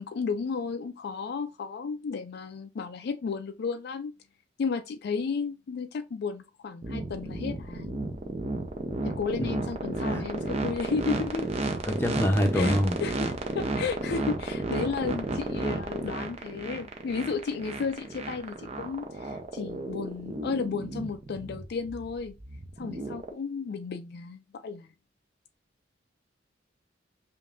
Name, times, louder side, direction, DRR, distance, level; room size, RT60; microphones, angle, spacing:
voice 1, 0.0-4.1 4.6-8.0 9.0-11.5 12.5-22.3 22.8-24.9, left 5 dB, 55° left, 0.3 m, -33 dB
sound 1, 6.8-23.3, right 2 dB, 35° right, 0.6 m, -32 dB
voice 2, 11.9-13.0, equal, 10° left, 0.7 m, -25 dB
5.3 x 2.6 x 2.5 m
head